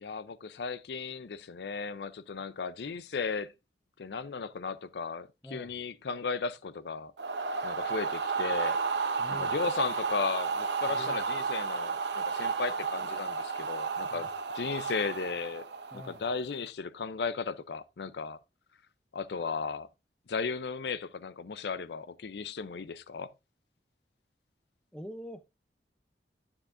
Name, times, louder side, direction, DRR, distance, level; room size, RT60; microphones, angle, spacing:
voice 1, 0.0-3.5 4.0-7.1 7.6-8.8 9.3-14.3 14.5-15.7 15.9-18.4 19.1-19.9 20.3-23.3, left 5 dB, 70° left, 0.5 m, -35 dB
voice 2, 5.4-5.7 9.2-9.5 10.9-11.2 14.1-14.3 15.9-16.2 24.9-25.4, left 1 dB, 5° left, 0.5 m, -44 dB
sound 1, 7.2-16.3, right 5 dB, 80° right, 0.8 m, -32 dB
9.5 x 6.9 x 2.5 m
head